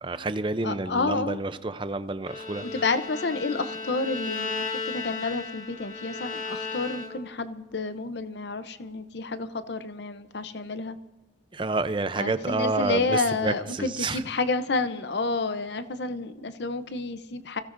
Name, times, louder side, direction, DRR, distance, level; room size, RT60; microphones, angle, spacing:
voice 1, 0.0-2.7 11.5-14.2, right 3 dB, 25° right, 11 dB, 0.6 m, -29 dB
voice 2, 0.6-1.4 2.6-11.0 12.2-17.6, left 3 dB, 65° left, 11 dB, 0.7 m, -30 dB
Bowed string instrument, 2.2-7.4, left 3 dB, 40° left, 1.9 m, -35 dB
26.5 x 16.0 x 2.6 m, 1.2 s
head